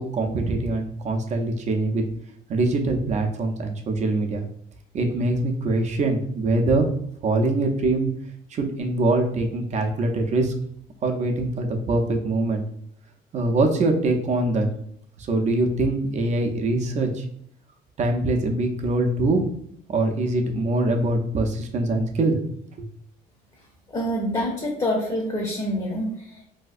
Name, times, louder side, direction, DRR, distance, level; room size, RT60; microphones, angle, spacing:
voice 1, 0.0-2.0 2.5-4.4 4.9-6.9 7.2-8.1 8.5-10.5 11.0-12.6 13.3-14.7 15.2-17.3 18.0-19.4 19.9-22.4 22.8-22.9, right 2 dB, 45° right, 3 dB, 0.4 m, -23 dB
voice 2, 23.9-26.4, equal, 25° left, 0 dB, 0.7 m, -26 dB
3.2 x 2.7 x 2.4 m, 0.68 s
cardioid pair, 110°, 17 cm